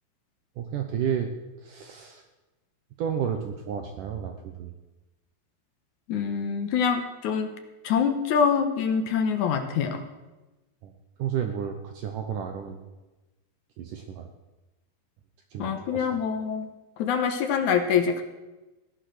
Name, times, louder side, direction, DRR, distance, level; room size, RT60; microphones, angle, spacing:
voice 1, 0.6-1.3 1.6-2.2 3.0-4.7 10.8-10.9 11.2-12.8 13.8-14.3 15.5-16.1, right 8 dB, 70° right, 5 dB, 2.1 m, -31 dB
voice 2, 6.1-7.5 7.8-10.0 15.6-16.7 17.0-18.2, left 6 dB, 70° left, 6 dB, 2.0 m, -25 dB
16.5 x 11.0 x 6.4 m, 1.1 s
omnidirectional pair, 4.7 m